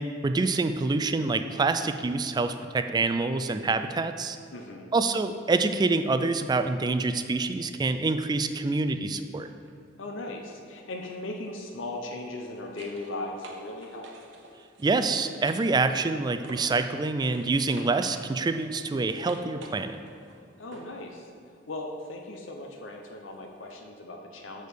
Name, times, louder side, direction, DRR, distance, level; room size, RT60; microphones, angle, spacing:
voice 1, 0.0-4.4 4.9-9.5 14.8-20.0, right 3 dB, 20° right, 9 dB, 0.3 m, -26 dB
voice 2, 4.5-4.9 10.0-14.1 20.6-21.3 21.7-24.7, left 2 dB, 85° left, 2 dB, 0.7 m, -38 dB
sound 1, 9.5-9.7 12.0-17.0 17.3-21.0 23.7-23.8, right 2 dB, 70° right, 0.9 m, -49 dB
6.5 x 6.4 x 5.1 m, 2.5 s
head